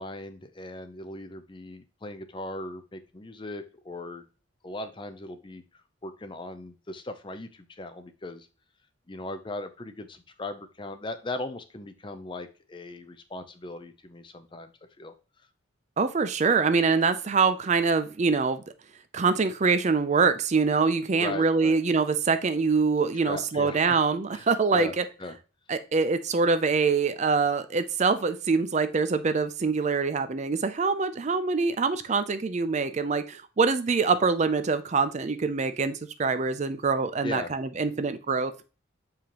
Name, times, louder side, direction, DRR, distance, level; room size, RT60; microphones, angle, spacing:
voice 1, 0.0-4.2 4.6-5.6 6.0-8.5 9.1-14.7 15.0-15.1 21.1-21.8 23.2-24.0 24.3-24.9 25.2-25.4 37.2-37.5, left 2 dB, 25° left, 9 dB, 0.5 m, -38 dB
voice 2, 16.0-18.6 19.1-25.0 25.7-38.6, right 4 dB, 35° right, 11 dB, 0.4 m, -24 dB
6.9 x 4.8 x 3.0 m, 0.33 s
head